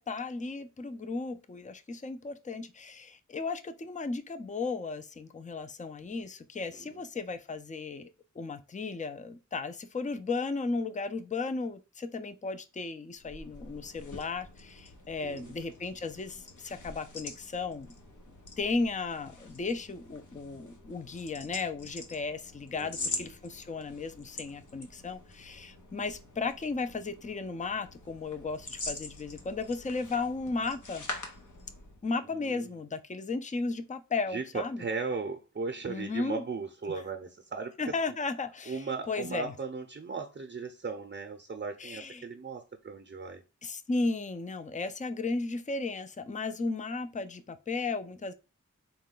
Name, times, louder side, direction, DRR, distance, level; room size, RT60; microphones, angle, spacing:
voice 1, 0.0-8.1 8.4-17.9 18.6-31.0 32.0-34.8 35.9-36.4 37.8-39.5 41.8-42.3 43.6-48.3, left 3 dB, 25° left, 0.4 m, -35 dB
sound 1, 13.1-32.0, left 3 dB, 85° left, 0.9 m, -45 dB
voice 2, 15.2-15.6 22.7-23.3 32.2-32.8 34.3-37.9 38.7-43.4, right 4 dB, 40° right, 0.6 m, -37 dB
4.1 x 2.2 x 3.7 m
wide cardioid pair, 65°, 30 cm